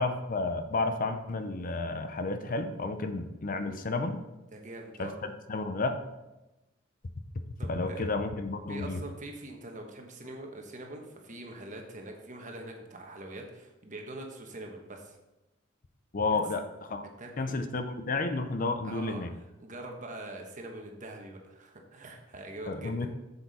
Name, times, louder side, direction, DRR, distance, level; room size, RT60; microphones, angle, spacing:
voice 1, 0.0-4.2 5.0-6.0 7.7-9.0 16.1-17.1 17.4-19.3 22.7-23.1, left 3 dB, 45° left, 8 dB, 0.6 m, -31 dB
voice 2, 4.5-5.2 7.6-8.0 8.7-15.2 16.3-16.4 17.2-17.6 18.8-19.2 19.6-23.1, right 1 dB, 40° right, 2 dB, 1.3 m, -43 dB
7.6 x 7.1 x 4.2 m, 1.0 s
head